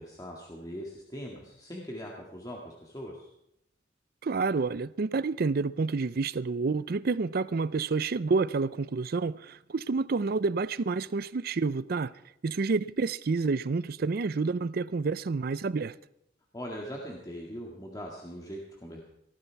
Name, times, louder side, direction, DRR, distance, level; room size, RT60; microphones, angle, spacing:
voice 1, 0.0-3.3 16.5-19.0, equal, 20° left, 1.9 m, -41 dB
voice 2, 4.2-12.1 12.4-16.0, right 4 dB, 55° right, 0.5 m, -29 dB
19.0 x 14.0 x 4.6 m
head